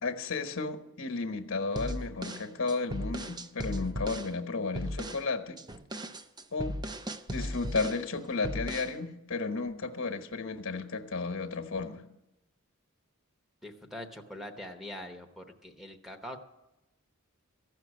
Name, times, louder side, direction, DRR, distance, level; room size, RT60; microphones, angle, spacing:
voice 1, 0.0-5.6 6.5-6.8 7.3-12.0, left 3 dB, 60° left, 7 dB, 1.1 m, -33 dB
sound 1, 1.8-4.3 4.8-5.3 5.6-8.1 8.4-9.0, equal, 20° right, 0.5 m, -37 dB
voice 2, 13.6-16.4, left 1 dB, ahead, 1 dB, 0.9 m, -43 dB
15.0 x 6.1 x 9.7 m, 0.92 s
head